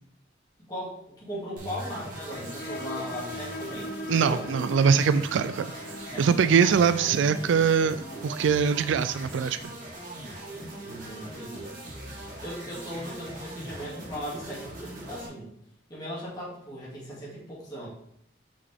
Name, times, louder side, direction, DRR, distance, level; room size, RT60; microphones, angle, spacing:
voice 1, 0.7-4.5 6.1-7.3 10.8-11.7 12.4-15.5 15.9-17.9, equal, 20° left, -7 dB, 2.4 m, -38 dB
sound 1, 1.6-15.3, right 1 dB, 45° right, 2.7 m, -40 dB
sound 2, 2.3-9.6, left 1 dB, 50° left, 0.6 m, -42 dB
voice 2, 4.1-5.7 6.2-8.0 8.2-9.7, right 6 dB, 70° right, 12 dB, 0.3 m, -22 dB
6.4 x 6.0 x 3.6 m, 0.71 s
head